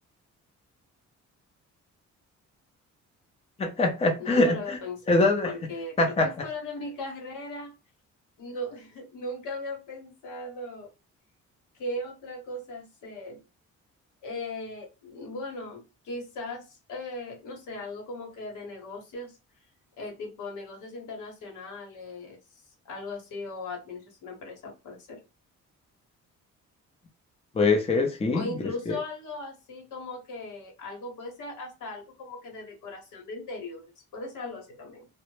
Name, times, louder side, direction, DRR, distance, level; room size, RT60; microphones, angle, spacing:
voice 1, 3.6-4.8 5.1-5.5 6.0-6.3 27.5-28.5 28.9-29.0, left 2 dB, 20° left, 0.5 m, -23 dB
voice 2, 4.2-7.7 8.4-10.9 11.8-13.4 14.2-19.4 20.0-22.4 22.8-25.2 28.3-35.1, left 2 dB, 80° left, 1.0 m, -38 dB
2.1 x 2.0 x 3.0 m
cardioid pair, 90°, 30 cm